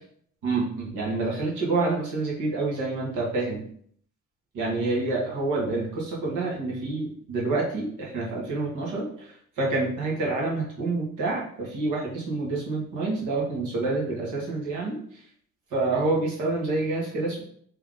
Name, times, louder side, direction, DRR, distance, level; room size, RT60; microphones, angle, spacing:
voice 1, 0.4-3.6 4.5-15.0 15.7-17.4, right 3 dB, 85° right, -4 dB, 1.6 m, -28 dB
3.5 x 3.4 x 3.7 m, 0.62 s
cardioid pair, 90°, 30 cm